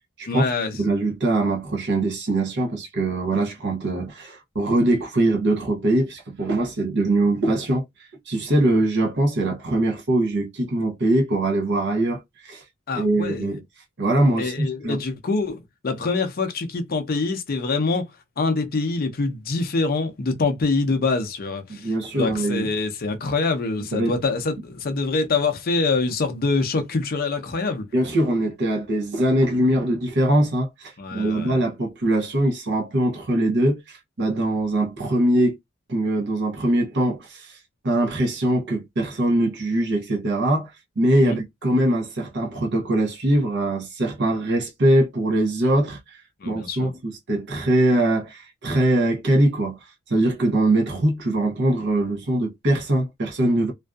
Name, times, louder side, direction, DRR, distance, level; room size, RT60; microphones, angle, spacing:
voice 1, 0.3-0.7 12.9-13.6 14.4-18.1 18.4-27.8 31.0-31.6 41.2-41.4 46.4-46.9, left 3 dB, 45° left, 0.5 m, -25 dB
voice 2, 0.8-7.8 8.3-12.6 13.0-13.6 14.0-15.0 21.7-22.7 23.9-24.1 27.9-35.6 35.9-37.6 37.8-46.2 46.5-49.8 50.1-53.7, right 1 dB, 55° right, 0.7 m, -22 dB
2.5 x 2.3 x 2.3 m
head